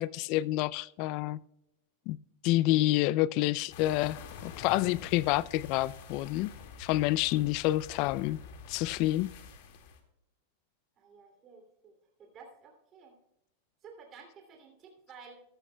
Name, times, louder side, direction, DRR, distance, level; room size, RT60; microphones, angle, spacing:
voice 1, 0.0-1.4 2.1-2.2 2.4-6.5 6.8-8.4 8.7-9.3, left 16 dB, 50° left, 21 dB, 0.3 m, -28 dB
sound 1, 3.7-10.0, left 6 dB, 65° left, 2.0 m, -47 dB
voice 2, 11.0-11.9 12.2-13.1 13.8-15.4, right 5 dB, 30° right, 2 dB, 2.8 m, -53 dB
14.5 x 12.0 x 2.3 m, 0.87 s
supercardioid pair, 130°, 0 cm